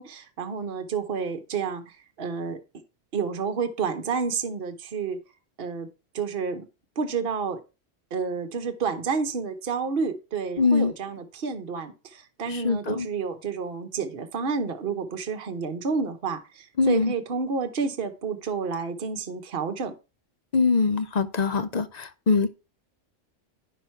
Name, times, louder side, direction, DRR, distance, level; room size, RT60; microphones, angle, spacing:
voice 1, 0.0-2.6 3.1-5.2 5.6-5.9 6.1-6.7 7.0-7.6 8.1-19.9, right 5 dB, 50° right, 1.1 m, -30 dB
voice 2, 10.6-10.9 12.5-13.1 16.8-17.1 20.5-22.5, left 4 dB, 45° left, 0.6 m, -23 dB
10.0 x 6.0 x 4.5 m
omnidirectional pair, 1.3 m